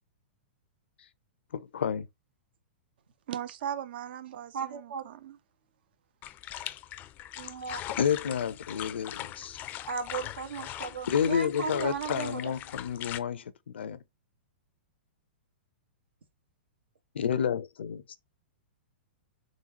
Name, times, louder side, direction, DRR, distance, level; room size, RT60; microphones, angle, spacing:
voice 1, 1.5-2.1 8.0-9.6 11.1-14.0 17.1-18.0, left 8 dB, 80° left, 0.5 m, -30 dB
voice 2, 3.3-5.4, right 9 dB, 65° right, 0.7 m, -38 dB
voice 3, 4.5-5.1 7.4-7.8 9.9-12.5, right 5 dB, 85° right, 1.4 m, -36 dB
sound 1, 6.2-13.2, left 13 dB, 30° left, 0.4 m, -40 dB
3.9 x 3.6 x 2.9 m
hypercardioid pair, 120°, 6 cm